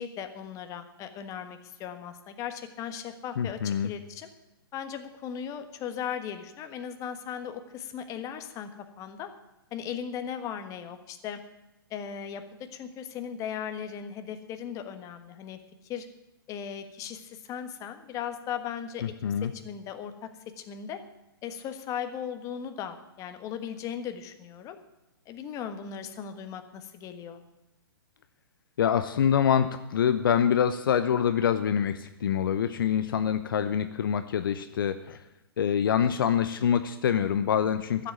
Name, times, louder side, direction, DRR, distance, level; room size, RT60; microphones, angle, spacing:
voice 1, 0.0-4.3 4.7-8.7 9.0-9.3 9.7-11.4 11.9-15.6 15.8-16.1 16.5-19.0 19.5-20.3 20.6-21.0 21.4-24.8 25.2-27.4 38.0-38.1, left 8 dB, 25° left, 8 dB, 1.4 m, -37 dB
voice 2, 3.4-3.9 19.0-19.5 28.8-35.2 35.6-38.0, left 8 dB, 60° left, 10 dB, 0.8 m, -25 dB
12.5 x 7.7 x 9.5 m, 0.95 s
figure-of-eight pair, 120°, 13 cm